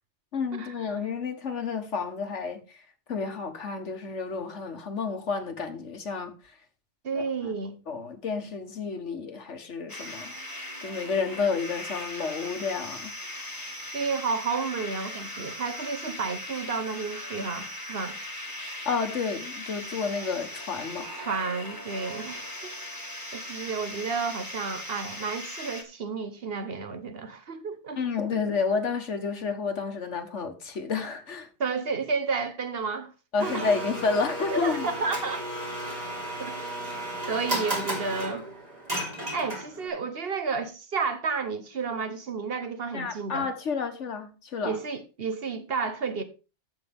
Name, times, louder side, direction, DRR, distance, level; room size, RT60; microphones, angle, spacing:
voice 1, 0.3-2.8 3.1-6.5 7.1-7.5 7.9-13.1 18.8-21.1 28.0-31.5 33.3-34.9 42.9-44.8, left 5 dB, 80° left, 1.7 m, -30 dB
voice 2, 7.0-7.8 13.9-18.2 21.1-22.7 23.3-28.0 28.3-28.4 31.6-33.1 33.4-33.7 34.5-35.4 36.4-36.5 37.3-38.4 39.3-43.5 44.6-46.2, right 5 dB, 55° right, 1.3 m, -31 dB
sound 1, 9.9-25.8, left 1 dB, 15° left, 1.8 m, -39 dB
Domestic sounds home sounds, 33.4-39.9, right 1 dB, 35° right, 3.2 m, -33 dB
14.0 x 5.9 x 3.5 m
omnidirectional pair, 1.2 m